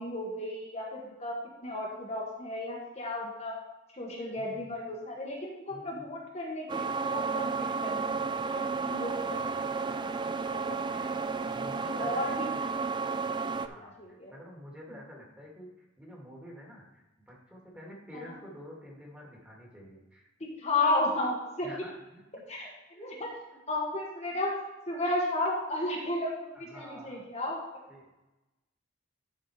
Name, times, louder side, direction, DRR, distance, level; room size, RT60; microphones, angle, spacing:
voice 1, 0.0-3.5 3.9-9.4 9.8-10.2 10.5-11.0 11.8-12.5 13.6-14.3 18.2-18.3 20.4-21.7 22.5-23.3 23.7-24.5 24.9-27.6, left 2 dB, 35° left, -2 dB, 1.4 m, -34 dB
voice 2, 4.4-4.7 5.7-6.0 9.1-9.6 11.5-12.7 13.5-15.7 16.0-20.3 21.6-22.2 22.9-23.1 26.5-27.2 27.9-28.1, equal, 5° right, -3 dB, 2.1 m, -49 dB
sound 1, 6.7-13.7, right 4 dB, 25° right, 0.3 m, -32 dB
11.5 x 4.5 x 4.7 m, 1.0 s
head